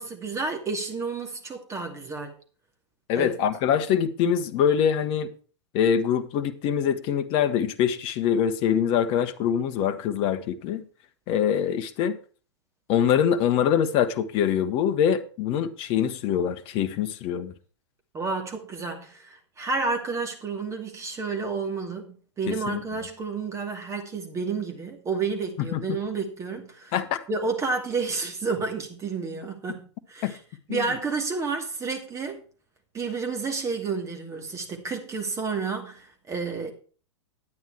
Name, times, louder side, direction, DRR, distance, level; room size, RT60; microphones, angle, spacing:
voice 1, 0.0-2.3 3.1-3.3 18.1-26.9 27.3-30.4 30.7-32.5 32.9-36.7, right 4 dB, 20° right, 2.4 m, -30 dB
voice 2, 3.1-5.3 5.7-10.8 11.3-12.2 12.9-17.5 22.5-22.8 25.7-26.0 26.9-27.2 30.2-30.3 30.7-30.8, left 8 dB, 40° left, 1.1 m, -24 dB
9.8 x 9.4 x 4.6 m
figure-of-eight pair, 100°, 15 cm